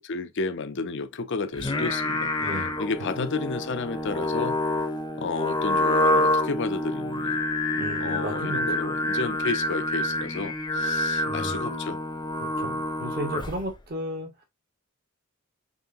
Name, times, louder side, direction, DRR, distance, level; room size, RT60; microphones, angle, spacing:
voice 1, 0.0-2.3 2.8-4.6 5.2-7.4 8.0-12.0 12.6-12.8, left 4 dB, 55° left, 0.6 m, -32 dB
Singing, 1.5-13.7, left 1 dB, 20° left, 0.7 m, -27 dB
voice 2, 2.4-2.7 3.0-3.3 7.7-8.6 11.3-11.6 12.6-14.4, right 1 dB, 45° right, 1.1 m, -34 dB
5.5 x 3.3 x 2.7 m
head